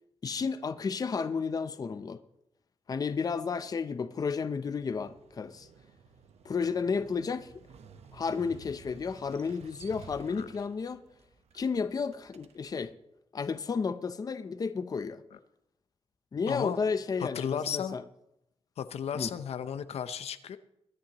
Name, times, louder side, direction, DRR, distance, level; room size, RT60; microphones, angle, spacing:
voice 1, 0.2-2.2 2.9-5.7 6.4-7.5 8.1-11.0 11.5-12.9 13.3-15.2 16.3-18.0 19.1-19.3, left 5 dB, 35° left, 11 dB, 0.6 m, -32 dB
Motorcycle, 4.6-12.9, right 5 dB, 90° right, 1.0 m, -54 dB
voice 2, 16.5-16.8 17.2-18.0 18.8-20.6, left 8 dB, 80° left, 11 dB, 0.7 m, -34 dB
23.0 x 10.0 x 3.0 m, 0.84 s
wide cardioid pair, 145°, 11 cm